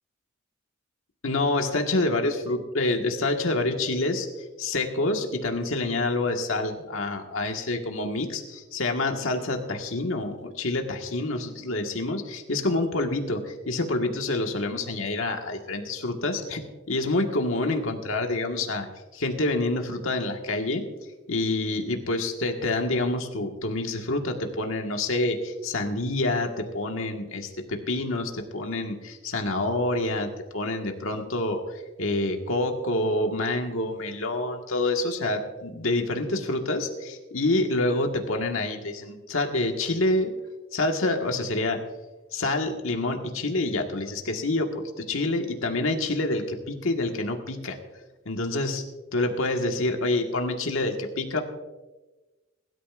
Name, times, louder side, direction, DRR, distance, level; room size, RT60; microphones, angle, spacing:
voice 1, 1.2-18.9 19.1-20.8 21.3-40.3 40.7-41.8 42.3-47.8 48.2-48.8 49.1-51.4, left 2 dB, 85° left, 3 dB, 1.6 m, -27 dB
22.5 x 12.5 x 2.5 m, 1.1 s
head